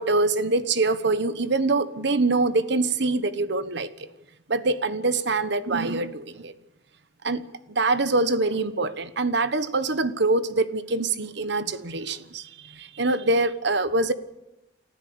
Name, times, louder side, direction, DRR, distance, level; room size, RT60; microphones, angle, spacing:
voice 1, 0.0-4.1 4.5-6.5 7.2-14.1, right 3 dB, 65° right, 13 dB, 1.2 m, -24 dB
29.5 x 14.0 x 7.0 m, 0.95 s
head